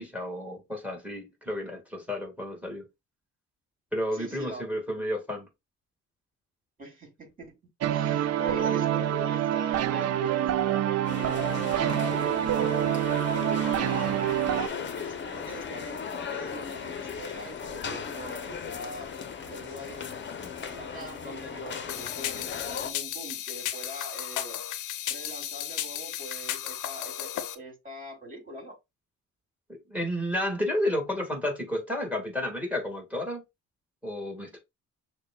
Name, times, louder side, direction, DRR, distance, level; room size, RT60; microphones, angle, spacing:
voice 1, 0.0-2.9 3.9-5.5 29.9-33.4 34.0-34.6, left 1 dB, 5° right, 1.6 m, -31 dB
voice 2, 4.1-5.1 6.8-7.6 7.9-14.1 14.5-19.1 19.4-20.2 20.7-24.6 25.1-28.8, right 1 dB, 25° right, 2.7 m, -42 dB
sound 1, 7.8-14.7, right 11 dB, 55° right, 0.5 m, -26 dB
sound 2, 11.0-22.9, left 6 dB, 40° left, 0.7 m, -37 dB
sound 3, 21.9-27.5, left 11 dB, 85° left, 0.6 m, -34 dB
6.4 x 2.2 x 2.2 m
cardioid pair, 90°, 30 cm